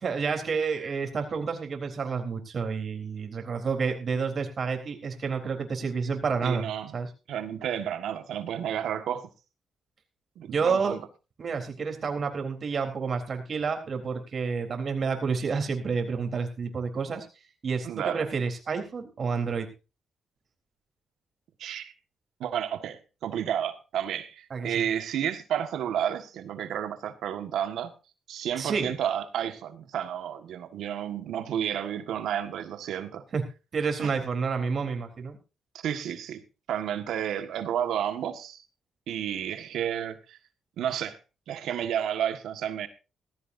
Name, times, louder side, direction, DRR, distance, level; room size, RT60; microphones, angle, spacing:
voice 1, 0.0-7.1 10.5-11.0 11.4-17.3 17.6-19.7 24.5-24.8 28.6-28.9 33.3-33.4 33.7-35.4, right 5 dB, 50° right, 4 dB, 3.8 m, -29 dB
voice 2, 6.4-6.9 7.3-9.3 10.4-11.0 17.8-18.2 21.6-21.9 22.4-27.9 28.3-33.2 34.0-34.1 35.8-36.4 36.7-38.6 39.1-40.4 40.8-41.2 41.5-42.9, right 9 dB, 85° right, 8 dB, 1.7 m, -31 dB
17.5 x 15.0 x 2.7 m, 0.30 s
cardioid pair, 85°, 0 cm